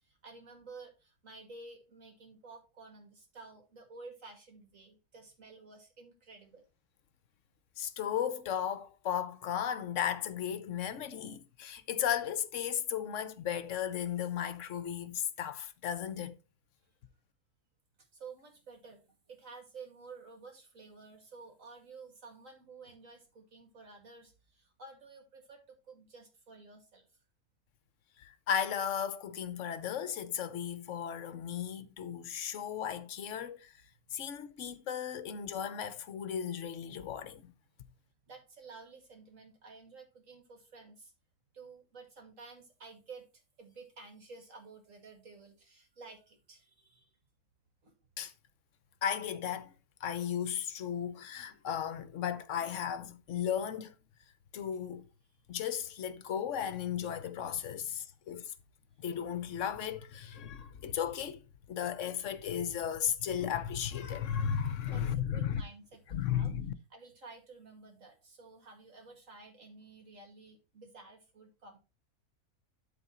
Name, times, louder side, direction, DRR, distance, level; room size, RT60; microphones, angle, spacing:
voice 1, 0.0-6.6 18.0-27.1 38.3-41.1 41.5-47.1 47.8-47.9 58.0-58.1 58.9-59.0 64.9-66.5 66.9-71.8, right 4 dB, 60° right, 2.6 m, -52 dB
voice 2, 7.8-16.4 28.2-33.7 34.1-37.5 48.2-48.3 49.0-49.7 50.0-53.9 54.5-55.1 55.5-58.5 59.0-61.4 61.7-65.6 66.1-66.7, left 9 dB, 60° left, 1.1 m, -35 dB
12.0 x 4.1 x 4.3 m
omnidirectional pair, 1.6 m